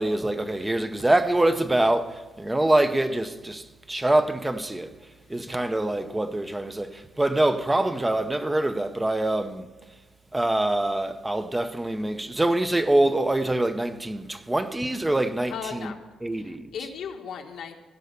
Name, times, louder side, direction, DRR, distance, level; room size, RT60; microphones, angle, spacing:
voice 1, 0.0-4.9 5.3-9.6 10.3-15.5 16.2-16.7, right 1 dB, 15° right, 0.8 m, -24 dB
voice 2, 15.5-16.0 16.4-17.7, left 7 dB, 70° left, 1.3 m, -36 dB
16.5 x 5.6 x 8.1 m
cardioid pair, 90°, 0 cm